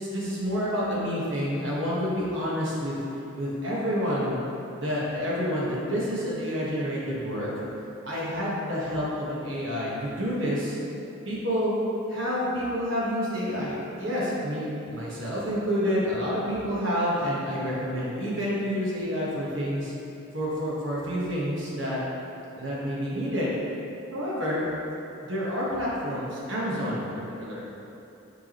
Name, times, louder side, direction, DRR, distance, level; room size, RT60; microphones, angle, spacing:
voice 1, 0.1-3.0 3.3-4.4 4.8-7.5 8.0-10.8 11.2-11.7 12.1-19.9 20.3-22.0 22.5-23.5 24.1-24.6 25.2-27.1 27.4-27.6, equal, 60° right, -7 dB, 1.4 m, -28 dB
6.7 x 4.8 x 3.1 m, 2.8 s
head